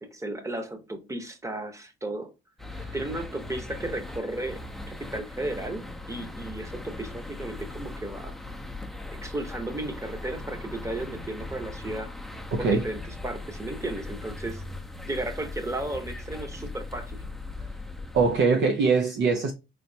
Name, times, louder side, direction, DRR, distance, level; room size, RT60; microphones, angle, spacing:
voice 1, 0.1-2.3 2.9-4.6 4.9-8.3 9.1-12.1 12.6-14.6 15.0-17.2, right 2 dB, 15° right, 0.9 m, -34 dB
sound 1, 2.6-18.4, left 2 dB, ahead, 0.6 m, -39 dB
voice 2, 12.5-12.8 18.1-19.5, right 4 dB, 65° right, 0.6 m, -23 dB
4.2 x 3.2 x 2.7 m
cardioid pair, 90°, 20 cm